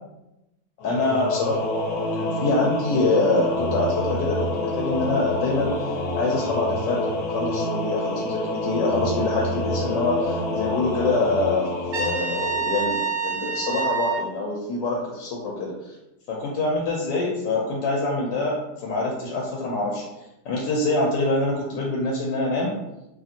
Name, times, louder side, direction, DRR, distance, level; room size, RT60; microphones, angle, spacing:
voice 1, 0.8-5.7 6.2-11.6 11.9-15.9 16.3-18.5 18.8-20.0 20.4-22.7, left 2 dB, 85° left, -2 dB, 1.3 m, -25 dB
Singing / Musical instrument, 0.8-13.3, left 1 dB, 70° left, 1.0 m, -28 dB
Trumpet, 11.9-14.2, right 5 dB, 65° right, 1.2 m, -26 dB
3.1 x 2.4 x 2.6 m, 0.92 s
omnidirectional pair, 1.9 m